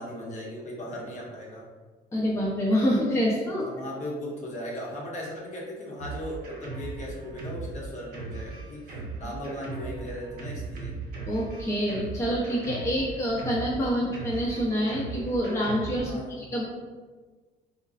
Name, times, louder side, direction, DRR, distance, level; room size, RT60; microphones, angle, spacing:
voice 1, 0.0-1.6 3.5-8.9 9.2-10.9 16.0-16.3, equal, 45° left, -4 dB, 0.8 m, -37 dB
voice 2, 2.1-3.7 11.3-16.1 16.4-16.7, equal, 15° left, -6 dB, 0.7 m, -26 dB
Drum kit, 6.0-16.1, right 3 dB, 60° right, 0.9 m, -38 dB
3.7 x 2.2 x 2.4 m, 1.4 s
cardioid pair, 110°, 17 cm